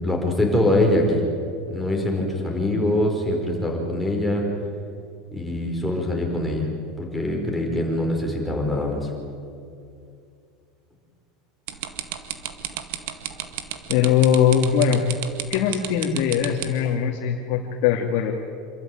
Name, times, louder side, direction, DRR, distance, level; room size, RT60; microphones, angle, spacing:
voice 1, 0.0-1.2 1.7-4.5 5.3-6.7 7.0-9.1, left 1 dB, 5° left, -1 dB, 4.9 m, -23 dB
sound 1, 11.7-16.9, right 12 dB, 70° right, 2.0 m, -31 dB
voice 2, 13.9-15.0 15.5-18.3, left 8 dB, 60° left, 1 dB, 2.2 m, -21 dB
27.0 x 14.0 x 9.2 m, 2.5 s
supercardioid pair, 140°, 0 cm